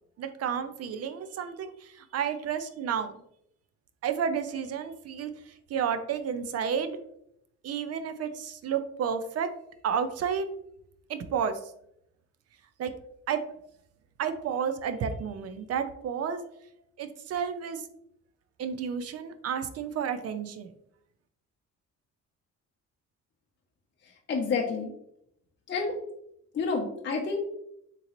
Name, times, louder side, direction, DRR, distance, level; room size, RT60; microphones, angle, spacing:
voice 1, 0.2-3.1 4.0-5.3 5.7-7.0 7.6-9.5 9.8-10.5 11.1-11.6 12.8-12.9 13.3-13.4 14.2-16.4 17.0-17.8 18.6-20.7, right 7 dB, 55° right, 9 dB, 0.5 m, -31 dB
voice 2, 24.3-24.9 25.7-26.0 26.5-27.4, left 4 dB, 40° left, 0 dB, 0.6 m, -29 dB
3.7 x 3.0 x 2.9 m, 0.74 s
cardioid pair, 90°, 30 cm